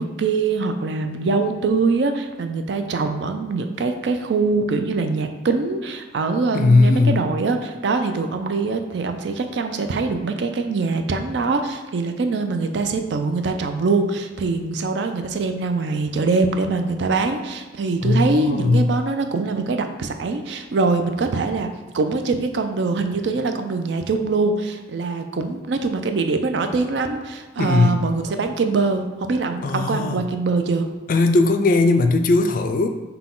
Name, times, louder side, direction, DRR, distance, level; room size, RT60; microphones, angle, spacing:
voice 1, 0.0-21.7 21.9-30.9, right 3 dB, 70° right, 7 dB, 0.4 m, -23 dB
voice 2, 6.5-7.2 18.0-18.9 27.6-28.0 29.6-30.2 31.1-32.9, left 3 dB, 50° left, 7 dB, 0.3 m, -18 dB
5.9 x 2.2 x 3.7 m, 1.2 s
head